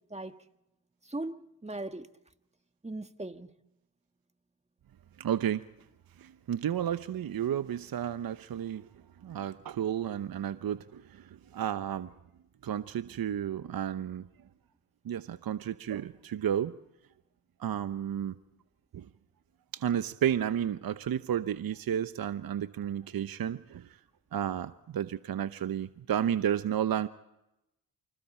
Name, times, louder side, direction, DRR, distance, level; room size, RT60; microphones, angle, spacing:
voice 1, 0.1-0.4 1.1-2.1 2.8-3.5, right 2 dB, 15° right, 1.8 m, -38 dB
voice 2, 5.2-5.6 6.2-8.9 9.2-12.1 12.6-14.2 15.0-16.7 17.6-18.3 18.9-19.1 19.7-23.9 24.3-27.1, right 9 dB, 55° right, 0.9 m, -32 dB
28.5 x 26.0 x 4.4 m
supercardioid pair, 45°, 43 cm